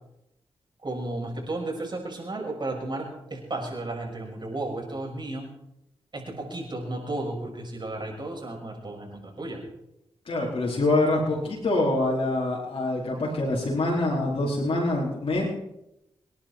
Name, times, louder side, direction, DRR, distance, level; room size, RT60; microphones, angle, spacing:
voice 1, 0.8-5.5 6.1-9.6, right 2 dB, 45° right, 0 dB, 6.5 m, -33 dB
voice 2, 10.3-15.5, left 2 dB, 60° left, -4 dB, 4.4 m, -25 dB
26.0 x 10.5 x 4.5 m, 0.86 s
cardioid pair, 45°, 11 cm